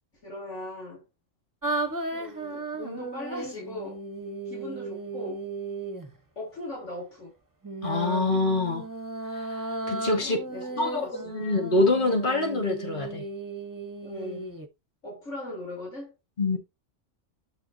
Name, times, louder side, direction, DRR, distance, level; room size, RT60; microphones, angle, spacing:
voice 1, 0.2-1.0 2.1-4.0 4.5-5.4 6.4-7.3 10.2-11.4 14.0-14.5 15.0-16.1, left 1 dB, 80° left, 4.6 m, -39 dB
sound 1, 1.6-6.1 7.6-14.7, right 2 dB, 15° right, 1.2 m, -35 dB
voice 2, 7.8-8.8 9.3-10.4 10.8-13.3 16.4-16.6, left 2 dB, 45° left, 2.3 m, -25 dB
8.9 x 6.3 x 2.9 m
omnidirectional pair, 1.2 m